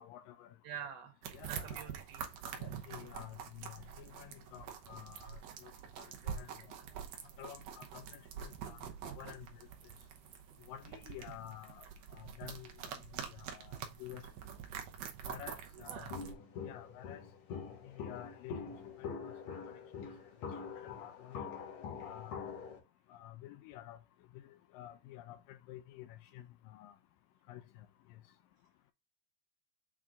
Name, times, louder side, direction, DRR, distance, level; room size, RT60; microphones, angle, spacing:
voice 1, 0.0-0.6 1.3-1.9 2.6-5.7 6.0-6.5 7.4-9.7 10.7-14.3 15.2-16.1 16.6-17.2 17.8-18.7 19.0-20.1 20.8-21.5 22.0-22.5 23.1-24.0 24.3-27.0 27.5-27.9, left 12 dB, 80° left, 2.2 m, -51 dB
voice 2, 0.6-1.2 1.6-2.2 15.9-16.1, right 8 dB, 85° right, 2.8 m, -46 dB
sound 1, 1.2-16.3, right 8 dB, 70° right, 1.7 m, -46 dB
Walk footsteps, 16.1-22.8, left 6 dB, 55° left, 2.6 m, -44 dB
7.6 x 3.7 x 3.8 m
omnidirectional pair, 4.1 m